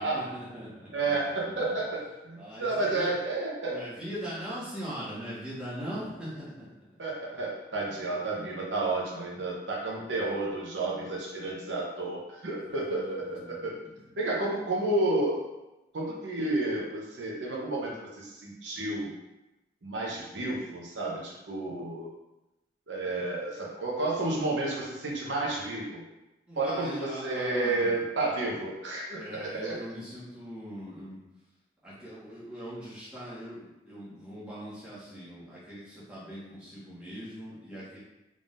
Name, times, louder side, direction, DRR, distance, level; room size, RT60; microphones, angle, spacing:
voice 1, 0.0-0.9 1.4-1.8 2.3-3.1 3.6-6.9 7.7-8.0 12.6-14.1 26.5-28.0 29.1-31.2 31.8-38.0, equal, 5° right, -10 dB, 1.4 m, -41 dB
voice 2, 0.9-3.8 7.0-13.7 14.2-15.4 15.9-19.1 19.8-22.1 22.9-26.0 26.6-29.8, right 2 dB, 85° right, -3 dB, 0.8 m, -31 dB
3.7 x 3.6 x 2.5 m, 0.97 s
head